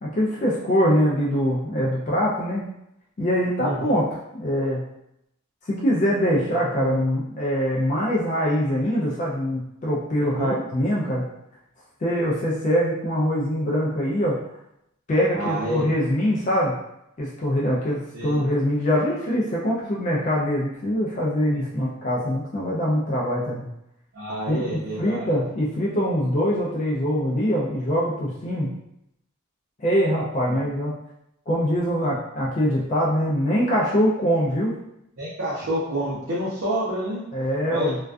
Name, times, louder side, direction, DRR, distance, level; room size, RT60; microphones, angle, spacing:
voice 1, 0.0-2.6 3.2-4.0 4.3-4.9 5.7-11.3 12.0-14.4 15.1-16.8 17.2-23.7 24.5-28.7 29.8-30.9 31.5-34.7 37.3-38.0, equal, 35° left, -5 dB, 0.3 m, -23 dB
voice 2, 3.6-3.9 6.5-6.9 10.3-10.5 15.3-15.9 18.1-18.4 21.5-21.9 24.1-25.3 30.6-30.8 35.2-37.2 37.7-37.9, right 1 dB, 60° right, -8 dB, 0.6 m, -29 dB
2.2 x 2.2 x 2.4 m, 0.81 s
head